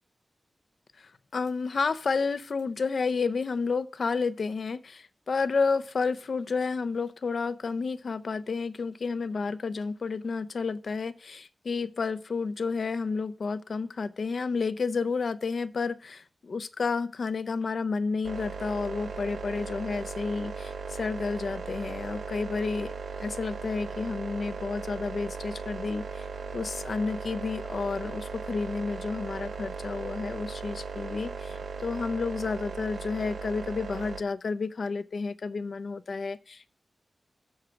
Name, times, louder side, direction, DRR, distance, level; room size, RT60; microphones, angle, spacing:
voice 1, 1.0-22.9 23.2-26.3 26.5-36.7, left 4 dB, 65° left, 12 dB, 0.6 m, -31 dB
sound 1, 18.2-34.2, right 5 dB, 85° right, 0.7 m, -38 dB
7.8 x 6.5 x 5.7 m, 0.40 s
wide cardioid pair, 130°, 0 cm